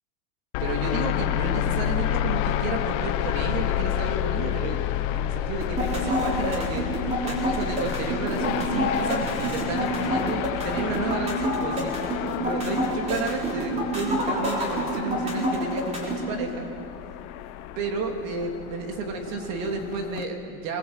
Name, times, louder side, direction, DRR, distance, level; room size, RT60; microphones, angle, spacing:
sound 1, 0.5-20.2, left 11 dB, 45° left, 1.1 m, -30 dB
voice 1, 0.6-4.8 5.1-6.8 7.2-12.1 12.4-16.7 17.8-20.8, right 4 dB, 60° right, 3 dB, 3.2 m, -32 dB
sound 2, 5.6-16.2, equal, 15° right, 3.6 m, -27 dB
21.0 x 21.0 x 8.1 m, 2.6 s
supercardioid pair, 165°, 45 cm